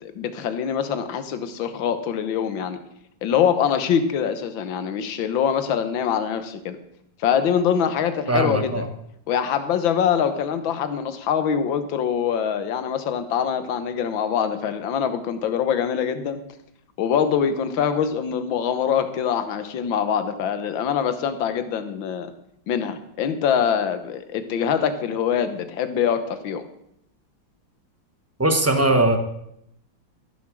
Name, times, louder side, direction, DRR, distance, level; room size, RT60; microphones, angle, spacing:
voice 1, 0.0-2.8 3.2-6.8 7.2-8.8 9.3-16.4 17.0-22.3 22.7-26.6, left 8 dB, 75° left, 10 dB, 1.8 m, -24 dB
voice 2, 8.3-8.8 28.4-29.2, right 2 dB, 15° right, 6 dB, 0.5 m, -20 dB
14.0 x 7.2 x 6.3 m, 0.76 s
omnidirectional pair, 2.2 m